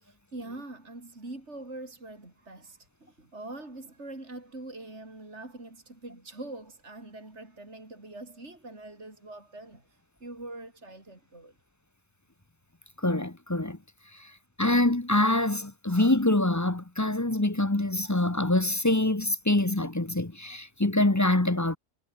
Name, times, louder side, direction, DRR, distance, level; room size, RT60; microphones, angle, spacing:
voice 1, 0.0-9.9 10.2-11.5, right 2 dB, 45° right, 5.2 m, -43 dB
voice 2, 13.0-13.8 14.2-14.3 14.6-21.8, left 1 dB, 15° left, 1.0 m, -25 dB
omnidirectional pair, 1.6 m